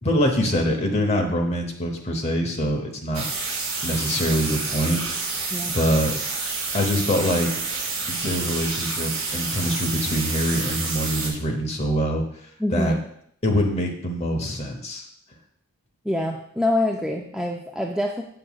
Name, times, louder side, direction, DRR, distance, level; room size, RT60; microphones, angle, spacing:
voice 1, 0.0-3.3 3.8-5.0 5.7-6.1 6.7-7.5 8.1-12.2 12.7-12.9 13.4-15.1, equal, 30° left, 2 dB, 0.9 m, -24 dB
sound 1, 3.1-11.3, right 4 dB, 70° right, 1.8 m, -29 dB
voice 2, 12.6-13.0 16.0-18.2, left 1 dB, 5° right, 1 dB, 0.3 m, -25 dB
7.5 x 6.0 x 2.3 m, 0.69 s
head